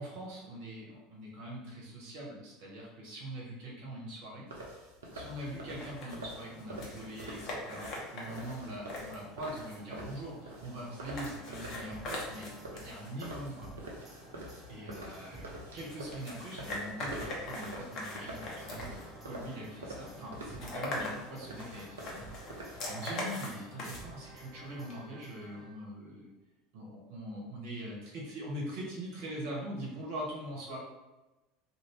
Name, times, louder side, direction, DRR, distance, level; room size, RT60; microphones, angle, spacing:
voice 1, 0.0-4.5 5.1-13.7 14.7-15.5 15.7-22.2 22.6-26.3 26.7-30.8, right 1 dB, 65° right, -3 dB, 1.1 m, -42 dB
sound 1, 4.5-23.0, right 1 dB, 85° right, 0.6 m, -47 dB
sound 2, 5.1-25.0, left 1 dB, 50° left, 0.9 m, -44 dB
sound 3, 11.9-26.0, right 2 dB, 15° right, 0.9 m, -53 dB
2.7 x 2.6 x 3.2 m, 1.1 s
hypercardioid pair, 75°, 0 cm